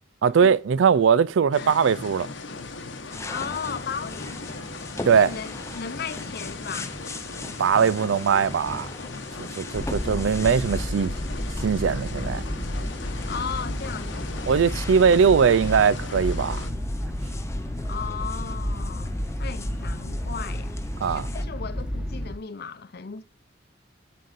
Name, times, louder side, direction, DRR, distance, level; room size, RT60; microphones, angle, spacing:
voice 1, 0.2-2.3 5.1-5.3 7.6-8.9 9.4-11.1 11.6-12.4 14.5-16.7 21.0-21.3, right 6 dB, 80° right, 0.4 m, -20 dB
sound 1, 1.5-16.7, left 3 dB, 80° left, 1.0 m, -38 dB
sound 2, 3.1-21.4, left 2 dB, 15° left, 0.6 m, -40 dB
voice 2, 3.3-4.3 5.1-6.9 13.3-14.4 17.9-23.2, left 6 dB, 55° left, 0.6 m, -36 dB
sound 3, 9.7-22.3, equal, 5° right, 1.3 m, -31 dB
8.4 x 7.6 x 2.5 m
head